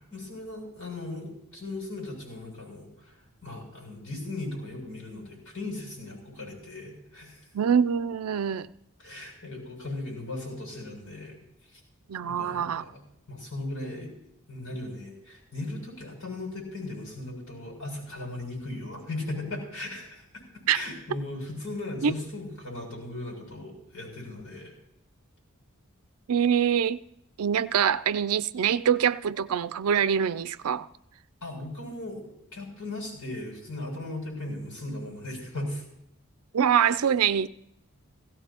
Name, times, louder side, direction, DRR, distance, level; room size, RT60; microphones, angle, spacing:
voice 1, 0.1-3.1 3.4-7.4 9.0-11.4 11.7-11.8 12.2-13.0 13.3-14.1 14.5-24.7 31.4-32.2 32.5-35.8, left 2 dB, 90° left, 7.2 m, -37 dB
voice 2, 7.5-8.7 12.1-12.8 20.7-20.8 22.0-22.1 26.3-27.0 27.4-30.9 36.5-37.5, right 8 dB, 90° right, 0.4 m, -24 dB
17.0 x 17.0 x 2.9 m
head